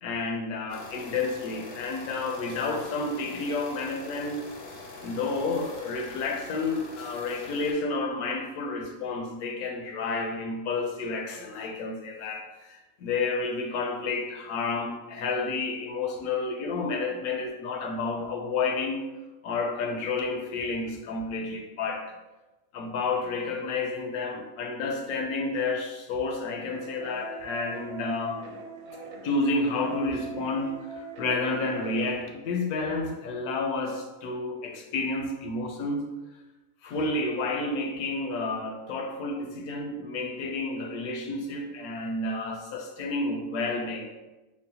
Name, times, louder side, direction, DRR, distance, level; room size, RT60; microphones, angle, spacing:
voice 1, 0.0-4.4 5.0-19.0 19.4-22.1 22.7-28.4 29.2-36.0 36.8-44.1, left 3 dB, 80° left, 2 dB, 1.1 m, -30 dB
sound 1, 0.7-7.7, left 3 dB, 60° left, 0.6 m, -44 dB
sound 2, 26.7-32.1, right 3 dB, 80° right, 1.0 m, -42 dB
3.9 x 2.1 x 2.7 m, 1.1 s
omnidirectional pair, 1.6 m